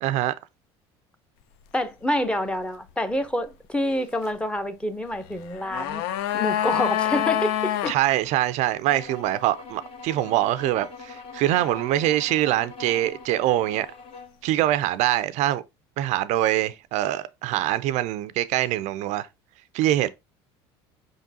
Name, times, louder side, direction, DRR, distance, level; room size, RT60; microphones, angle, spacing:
voice 1, 0.0-0.3 7.9-13.9 14.4-15.6 16.0-19.3 19.7-20.1, right 14 dB, 60° right, 0.4 m, -24 dB
voice 2, 1.7-6.1 6.3-7.9, left 1 dB, 10° left, 0.6 m, -27 dB
sound 1, 5.4-8.0 8.3-8.4, left 12 dB, 80° left, 0.5 m, -26 dB
sound 2, 8.9-14.4, left 4 dB, 45° left, 1.0 m, -42 dB
5.2 x 3.7 x 2.7 m
supercardioid pair, 100°, 13 cm